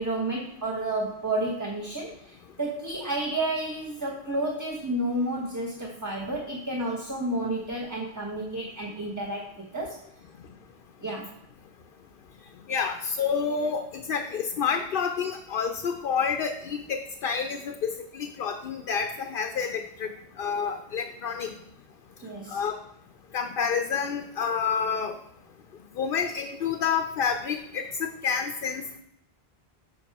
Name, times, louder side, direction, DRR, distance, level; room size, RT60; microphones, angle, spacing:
voice 1, 0.0-10.0 11.0-11.3 22.2-22.6, right 1 dB, 20° right, -1 dB, 1.0 m, -31 dB
voice 2, 12.7-20.1 20.4-21.5 22.5-22.8 23.3-25.1 26.0-29.0, left 6 dB, 65° left, 7 dB, 0.8 m, -29 dB
7.8 x 6.0 x 4.6 m, 0.74 s
omnidirectional pair, 1.1 m